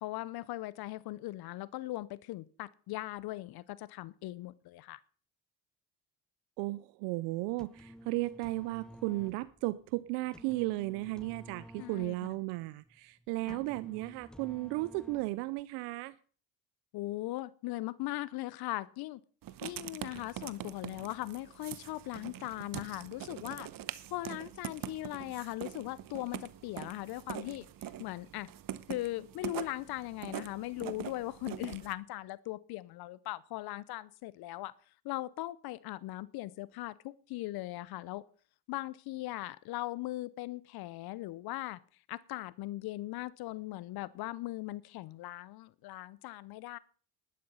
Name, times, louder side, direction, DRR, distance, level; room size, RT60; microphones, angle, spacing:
voice 1, 0.0-5.0 11.8-12.1 13.5-13.6 16.9-19.2 19.6-23.7 24.1-28.5 28.9-34.7 35.0-38.3 38.7-41.8 42.1-46.8, left 17 dB, 65° left, 0.7 m, -39 dB
voice 2, 6.6-16.1, right 20 dB, 80° right, 0.6 m, -35 dB
sound 1, 7.4-15.6, equal, ahead, 0.6 m, -53 dB
Writing, 19.4-31.9, right 12 dB, 55° right, 1.0 m, -44 dB
12.0 x 11.5 x 5.5 m
supercardioid pair, 70°, 40 cm